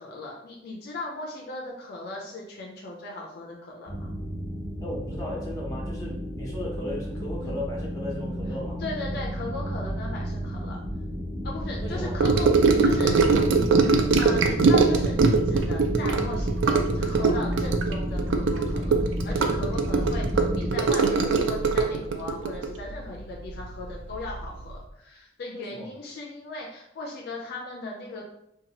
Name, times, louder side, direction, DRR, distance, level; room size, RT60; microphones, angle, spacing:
voice 1, 0.0-4.1 7.4-7.6 8.8-10.8 11.4-12.5 12.8-19.0 19.2-28.2, left 2 dB, 60° left, -2 dB, 0.4 m, -37 dB
sound 1, 3.9-20.7, equal, 25° right, 1.4 m, -31 dB
voice 2, 4.8-8.8 11.8-12.1 25.5-25.9, left 1 dB, 20° left, -4 dB, 0.8 m, -36 dB
Gurgling / Sink (filling or washing) / Trickle dribble, 12.2-23.9 24.1-24.4 24.7-24.8, right 4 dB, 80° right, 0.3 m, -22 dB
2.8 x 2.2 x 2.8 m, 0.78 s
head